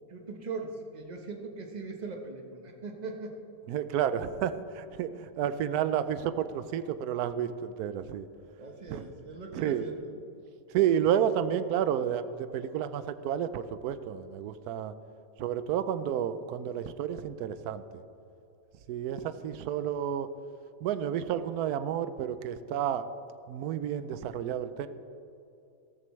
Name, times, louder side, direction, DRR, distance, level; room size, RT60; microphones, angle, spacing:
voice 1, 0.1-3.4 8.6-10.1, right 3 dB, 30° right, 2 dB, 1.0 m, -40 dB
voice 2, 3.7-8.3 8.9-9.0 9.5-9.9 10.7-14.9 15.4-17.8 18.9-20.3 20.8-23.1 23.5-24.9, right 9 dB, 70° right, 12 dB, 1.0 m, -30 dB
14.0 x 13.5 x 3.2 m, 2.7 s
omnidirectional pair, 1.9 m